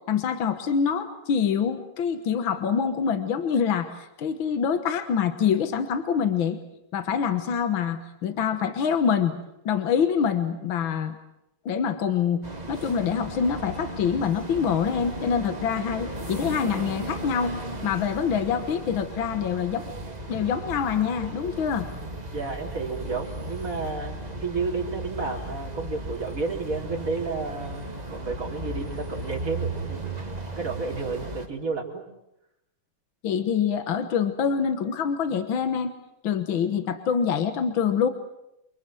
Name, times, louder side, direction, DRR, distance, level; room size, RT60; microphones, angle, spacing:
voice 1, 0.1-6.6 6.9-9.3 9.7-11.2 11.7-12.4 12.7-17.6 17.8-19.9 20.3-21.9 33.2-35.9 36.2-38.1, left 7 dB, 70° left, 9 dB, 2.1 m, -25 dB
sound 1, 12.4-31.5, right 2 dB, 20° right, 2.1 m, -36 dB
voice 2, 22.3-24.1 24.4-30.0 30.6-32.0, right 4 dB, 40° right, -1 dB, 4.7 m, -31 dB
28.5 x 25.0 x 7.8 m, 0.85 s
omnidirectional pair, 2.3 m